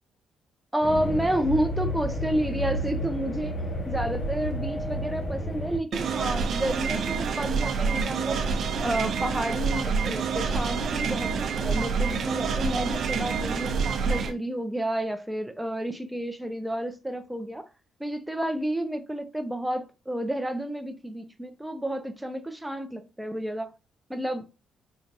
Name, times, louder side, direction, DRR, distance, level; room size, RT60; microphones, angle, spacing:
voice 1, 0.7-3.6 3.9-8.4 8.8-13.8 14.1-17.7 18.0-23.7 24.1-24.6, right 1 dB, 5° right, 0.6 m, -30 dB
sound 1, 0.8-5.8, equal, 40° left, 1.0 m, -31 dB
sound 2, 5.9-14.3, right 5 dB, 60° right, 0.6 m, -27 dB
4.5 x 2.5 x 2.5 m
cardioid pair, 90°, 0 cm